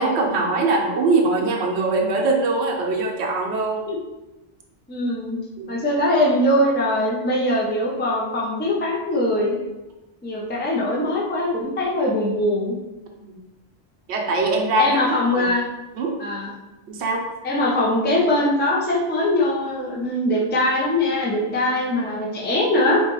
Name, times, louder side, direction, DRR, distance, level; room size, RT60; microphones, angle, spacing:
voice 1, 0.0-3.8 5.6-5.7 14.1-15.0 15.3-15.5 16.0-16.1 16.9-17.3, right 3 dB, 75° right, 0 dB, 0.9 m, -22 dB
voice 2, 4.9-5.4 5.7-9.6 10.2-12.7 14.8-15.7 16.2-16.5 17.4-23.0, left 1 dB, 15° left, -3 dB, 0.3 m, -21 dB
4.2 x 2.3 x 3.0 m, 1.0 s
omnidirectional pair, 1.2 m